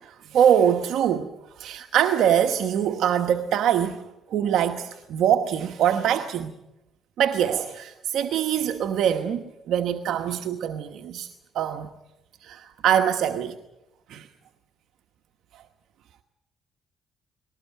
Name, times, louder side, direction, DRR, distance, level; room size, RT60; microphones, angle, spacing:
voice 1, 0.3-4.0 4.3-6.5 7.2-11.3 11.5-11.9 12.4-13.6 14.1-14.3, right 9 dB, 80° right, 1.1 m, -23 dB
20.0 x 18.5 x 9.2 m
cardioid pair, 90°, 0 cm